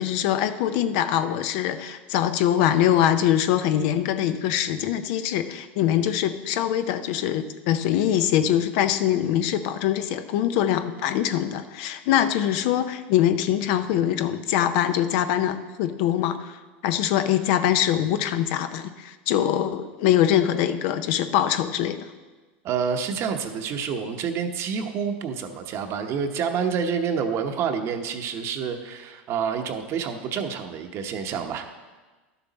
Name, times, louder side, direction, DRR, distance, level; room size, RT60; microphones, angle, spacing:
voice 1, 0.0-22.0, left 11 dB, 65° left, 10 dB, 0.6 m, -23 dB
voice 2, 22.6-31.7, right 6 dB, 45° right, 6 dB, 1.0 m, -28 dB
11.5 x 7.0 x 4.1 m, 1.3 s
hypercardioid pair, 105°, 6 cm